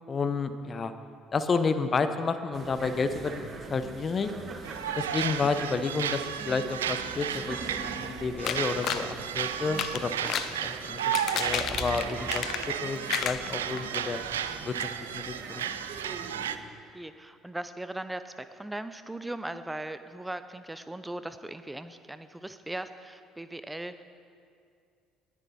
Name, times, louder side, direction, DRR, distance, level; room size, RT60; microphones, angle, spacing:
voice 1, 0.1-0.9 1.3-4.3 5.0-10.3 10.6-12.5 12.8-14.2 14.6-14.7 15.1-15.6, left 4 dB, 40° left, 10 dB, 0.9 m, -30 dB
sound 1, 2.5-16.6, right 4 dB, 45° right, 1.6 m, -43 dB
sound 2, 4.6-16.6, right 9 dB, 90° right, 0.4 m, -34 dB
sound 3, 8.4-9.1 9.6-10.5 11.0-12.8 13.1-14.0 14.4-14.5 14.8-14.9, left 10 dB, 60° left, 0.6 m, -32 dB
voice 2, 16.9-24.0, right 1 dB, 10° right, 11 dB, 0.7 m, -39 dB
19.0 x 9.8 x 4.3 m, 2.3 s
hypercardioid pair, 60°, 0 cm